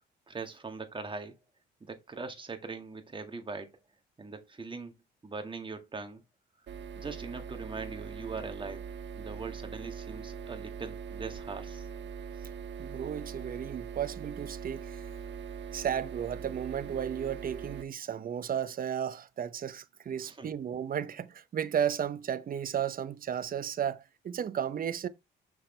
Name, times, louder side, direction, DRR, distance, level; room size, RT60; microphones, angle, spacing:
voice 1, 0.3-1.4 1.8-3.7 4.2-4.9 5.2-6.2 7.0-11.9 20.2-20.5, right 4 dB, 25° right, 1.8 m, -41 dB
sound 1, 6.7-17.8, right 6 dB, 65° right, 1.5 m, -42 dB
voice 2, 12.8-15.0 15.7-25.1, right 9 dB, 45° right, 0.8 m, -34 dB
6.3 x 6.2 x 3.3 m
cardioid pair, 90°, 20 cm